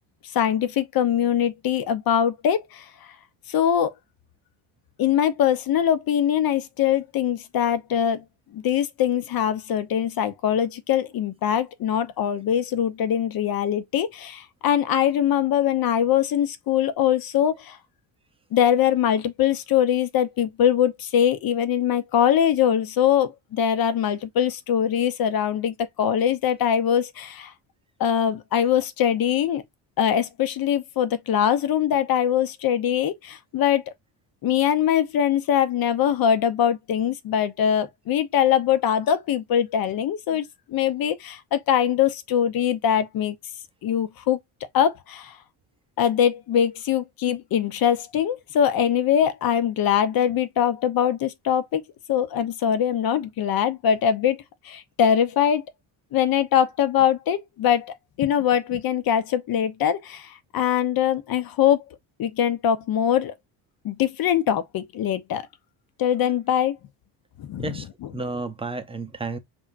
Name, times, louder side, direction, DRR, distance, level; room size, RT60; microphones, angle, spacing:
voice 1, 0.3-2.9 3.5-3.9 5.0-8.2 8.5-17.8 18.5-27.5 28.0-29.6 30.0-33.8 34.4-43.4 43.8-44.4 44.7-45.4 46.0-51.8 52.1-55.6 56.1-61.8 62.2-63.3 63.8-65.5 66.0-66.8 67.4-67.7 68.0-68.1, left 9 dB, 50° left, 0.9 m, -22 dB
voice 2, 67.6-69.4, right 2 dB, 10° right, 0.7 m, -32 dB
5.9 x 3.6 x 2.5 m
cardioid pair, 160°, 46 cm